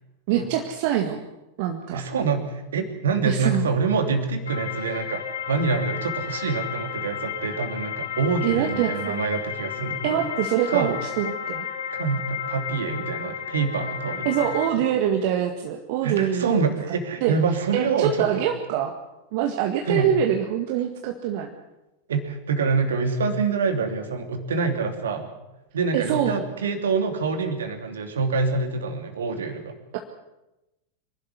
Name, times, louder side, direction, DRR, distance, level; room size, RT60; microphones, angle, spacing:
voice 1, 0.3-1.2 1.6-2.0 3.2-3.7 8.4-9.1 10.0-11.7 14.3-16.7 17.2-17.4 17.7-19.0 19.3-21.5 25.9-26.3, right 10 dB, 50° right, 3 dB, 1.9 m, -24 dB
voice 2, 1.9-10.2 10.7-10.9 11.9-14.5 16.0-18.4 19.9-20.1 22.1-25.3 25.7-29.7, right 4 dB, 65° right, 6 dB, 3.0 m, -26 dB
sound 1, 4.5-14.7, left 8 dB, 65° left, 3.2 m, -32 dB
25.5 x 12.0 x 9.8 m, 0.97 s
figure-of-eight pair, 90°, 0 cm